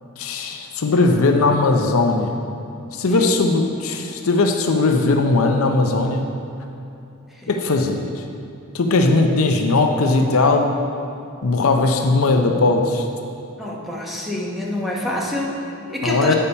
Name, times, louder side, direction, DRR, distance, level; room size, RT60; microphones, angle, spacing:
voice 1, 0.2-2.3 2.9-6.3 7.5-8.1 8.7-10.7 11.4-13.0 16.0-16.3, left 3 dB, 70° left, 4 dB, 0.6 m, -18 dB
voice 2, 13.6-16.3, left 1 dB, ahead, -4 dB, 1.0 m, -27 dB
8.4 x 5.6 x 5.5 m, 2.8 s
head